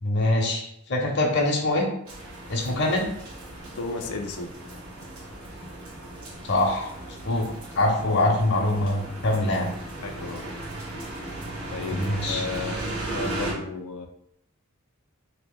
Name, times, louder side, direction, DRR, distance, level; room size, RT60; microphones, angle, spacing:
voice 1, 0.0-1.9 2.5-3.1 6.4-6.9 7.2-7.5 7.7-9.7 11.9-12.4, left 1 dB, 55° left, -1 dB, 0.8 m, -24 dB
sound 1, 2.0-13.5, right 1 dB, 85° right, 1.2 m, -36 dB
voice 2, 3.8-4.6 9.3-9.6 10.0-10.5 11.0-11.1 11.7-14.1, left 4 dB, 85° left, 4 dB, 0.5 m, -34 dB
2.9 x 2.8 x 3.8 m, 0.72 s
head